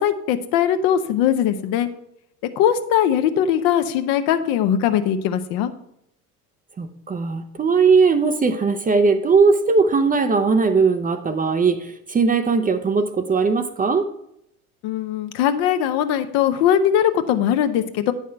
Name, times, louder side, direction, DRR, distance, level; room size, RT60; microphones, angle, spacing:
voice 1, 0.0-1.9 2.6-5.7 14.8-18.1, left 9 dB, 55° left, 9 dB, 0.9 m, -20 dB
voice 2, 6.8-14.1, right 4 dB, 20° right, 9 dB, 0.6 m, -19 dB
9.3 x 5.8 x 4.5 m, 0.76 s
figure-of-eight pair, 70°, 46 cm